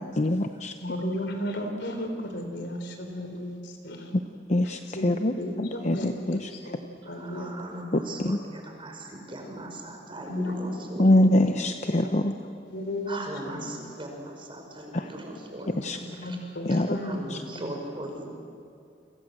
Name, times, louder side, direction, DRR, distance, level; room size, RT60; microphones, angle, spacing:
voice 1, 0.0-0.7 4.5-6.5 7.9-8.4 11.0-12.4 14.9-15.1 15.6-16.0 16.7-17.0 17.3-17.4, left 1 dB, 40° left, 6 dB, 0.8 m, -24 dB
voice 2, 0.8-4.1 4.9-6.8 7.1-8.1 10.3-10.9 11.4-11.6 12.0-12.1 12.7-14.0 15.6-17.7, left 1 dB, 65° left, 5 dB, 4.3 m, -35 dB
voice 3, 7.0-11.3 13.1-16.0 17.0-18.2, right 1 dB, 30° right, 2 dB, 5.4 m, -39 dB
30.0 x 25.5 x 7.8 m, 2.4 s
head